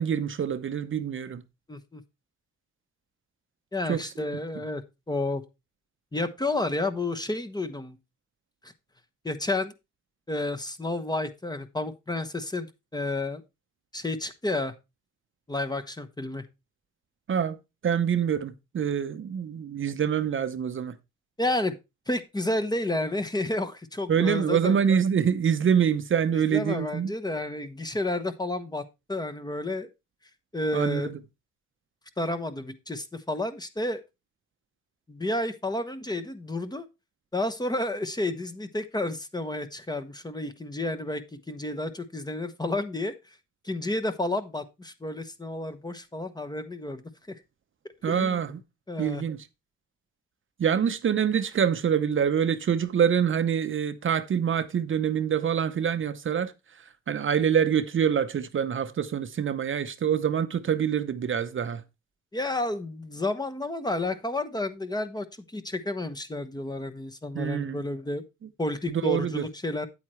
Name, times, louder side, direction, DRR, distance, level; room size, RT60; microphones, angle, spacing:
voice 1, 0.0-1.4 3.9-4.0 17.3-17.6 17.8-21.0 24.1-27.1 30.7-31.2 48.0-48.6 49.0-49.5 50.6-56.5 57.1-61.8 67.3-67.8 68.9-69.5, right 8 dB, 40° right, 0.7 m, -25 dB
voice 2, 1.7-2.0 3.7-4.8 5.1-5.4 6.1-8.0 8.6-8.7 9.2-9.7 10.3-13.4 13.9-14.7 15.5-16.4 21.4-21.8 22.1-24.8 26.3-28.8 29.1-29.9 30.5-31.1 32.2-34.0 35.1-36.8 37.3-43.1 43.6-47.3 48.1-48.4 48.9-49.2 62.3-65.3 65.5-68.2 68.6-69.9, left 2 dB, 15° left, 1.0 m, -31 dB
8.9 x 8.4 x 3.2 m
cardioid pair, 90°, 30 cm